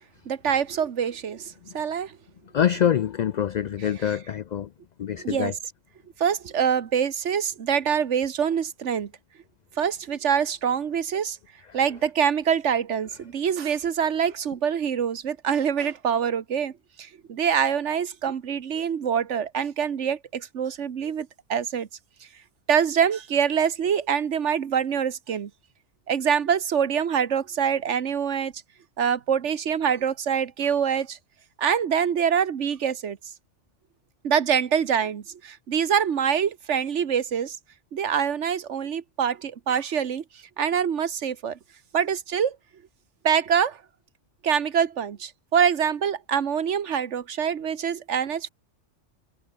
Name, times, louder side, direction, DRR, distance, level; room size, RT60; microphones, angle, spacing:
voice 1, 0.3-2.2 4.0-4.1 5.2-5.6 6.2-9.1 9.8-11.4 11.7-16.7 17.0-21.9 22.7-25.5 26.1-28.5 29.0-31.2 31.6-33.2 34.2-37.6 37.9-40.2 40.6-41.6 41.9-42.6 43.2-43.8 44.4-48.5, right 7 dB, 70° right, 1.4 m, -25 dB
voice 2, 2.5-4.7 5.0-5.5, left 9 dB, 65° left, 0.4 m, -25 dB
omnidirectional pair, 1.3 m